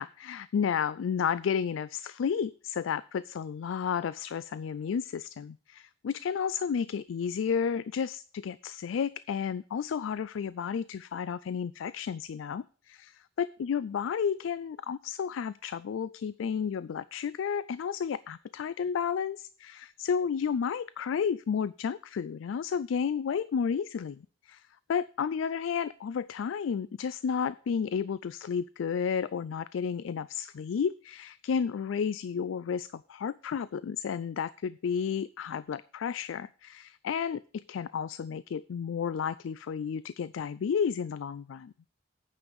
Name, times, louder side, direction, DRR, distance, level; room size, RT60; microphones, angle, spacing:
voice 1, 0.0-41.7, left 7 dB, 85° left, 17 dB, 0.3 m, -32 dB
9.0 x 5.4 x 7.6 m, 0.40 s
head